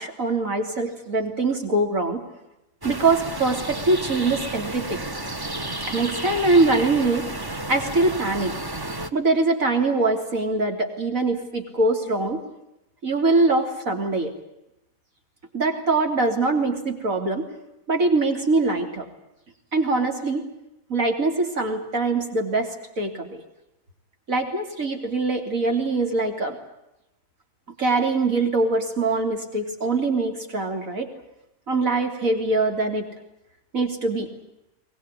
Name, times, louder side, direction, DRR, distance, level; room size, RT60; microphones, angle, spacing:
voice 1, 0.0-2.2 2.8-5.0 5.9-7.3 7.7-8.5 9.1-12.4 13.0-14.3 15.5-17.5 17.9-19.1 19.7-20.4 20.9-22.7 23.0-23.4 24.3-26.6 27.8-31.1 31.7-33.1 33.7-34.3, right 3 dB, 65° right, 4 dB, 3.8 m, -23 dB
sound 1, 2.8-9.1, right 2 dB, 15° right, 1.1 m, -32 dB
22.5 x 20.0 x 9.9 m, 0.90 s
omnidirectional pair, 1.5 m